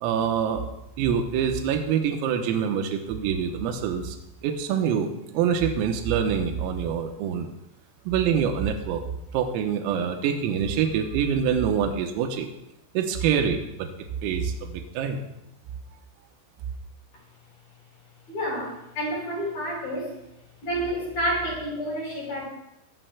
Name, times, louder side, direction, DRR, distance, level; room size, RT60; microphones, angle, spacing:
voice 1, 0.0-0.7 1.0-4.2 4.4-7.5 8.1-9.0 9.3-12.5 13.0-13.9 14.2-15.2, right 7 dB, 90° right, 4 dB, 3.7 m, -25 dB
voice 2, 18.3-20.1 20.6-22.4, equal, 45° left, -3 dB, 5.6 m, -29 dB
24.5 x 14.5 x 2.3 m, 0.86 s
omnidirectional pair, 5.9 m